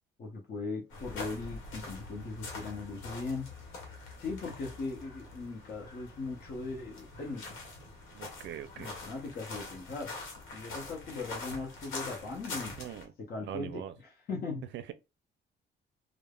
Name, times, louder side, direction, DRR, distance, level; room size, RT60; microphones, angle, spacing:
voice 1, 0.2-3.5 4.2-7.6 8.7-10.1 10.5-12.7 13.3-13.8 14.3-14.6, left 3 dB, 50° left, 0.7 m, -39 dB
sound 1, 0.9-13.0, left 3 dB, 90° left, 0.9 m, -44 dB
voice 2, 8.1-9.0 12.8-13.1 13.4-13.9 14.7-14.9, right 10 dB, 70° right, 0.4 m, -42 dB
3.2 x 2.0 x 2.3 m
cardioid pair, 90°, 20 cm